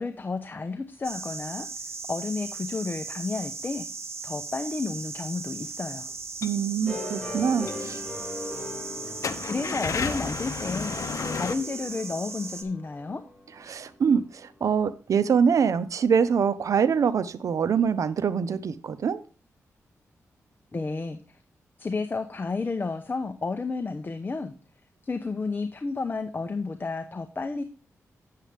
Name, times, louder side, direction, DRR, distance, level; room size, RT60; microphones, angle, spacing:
voice 1, 0.0-1.7 2.1-3.9 4.2-6.1 9.4-11.0 11.3-13.2 20.7-21.2 21.8-24.5 25.0-27.6, left 3 dB, 35° left, 0.8 m, -31 dB
sound 1, 1.0-12.6, right 4 dB, 50° right, 1.3 m, -38 dB
sound 2, 6.2-6.6 7.3-7.4 7.7-7.8 8.2-8.3 9.1-11.5, left 6 dB, 65° left, 0.8 m, -31 dB
voice 2, 6.4-8.0 13.7-19.2, right 6 dB, 70° right, 0.7 m, -24 dB
sound 3, 6.9-14.7, left 2 dB, 10° left, 4.1 m, -40 dB
8.7 x 7.5 x 3.4 m
cardioid pair, 70°, 6 cm